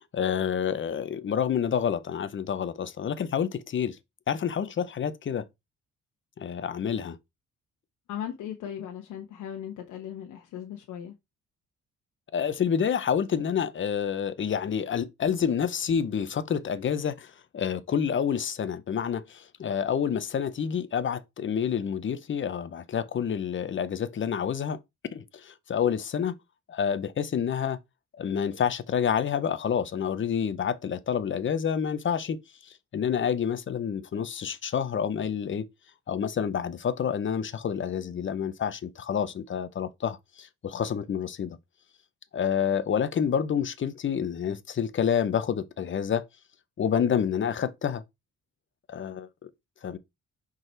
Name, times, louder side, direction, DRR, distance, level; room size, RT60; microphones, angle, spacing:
voice 1, 0.0-4.0 4.3-5.5 6.4-7.2 12.3-24.8 25.1-26.3 26.7-27.8 28.2-35.6 36.1-41.6 42.3-46.2 46.8-48.0 48.9-49.5 49.8-50.0, left 8 dB, 40° left, 0.8 m, -28 dB
voice 2, 8.1-11.1, left 9 dB, 80° left, 1.1 m, -38 dB
5.3 x 4.0 x 4.5 m
cardioid pair, 90°, 30 cm